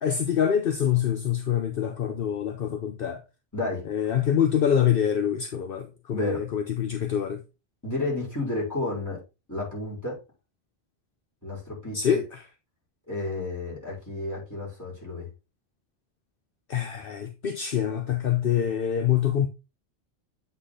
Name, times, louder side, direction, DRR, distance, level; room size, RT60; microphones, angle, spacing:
voice 1, 0.0-3.2 3.9-7.4 11.9-12.3 16.7-19.5, left 9 dB, 60° left, 0.9 m, -25 dB
voice 2, 3.5-3.8 6.1-6.5 7.8-9.2 9.5-10.2 11.4-12.2 13.1-15.3, left 2 dB, 15° left, 3.7 m, -31 dB
8.2 x 3.9 x 3.8 m
omnidirectional pair, 1.1 m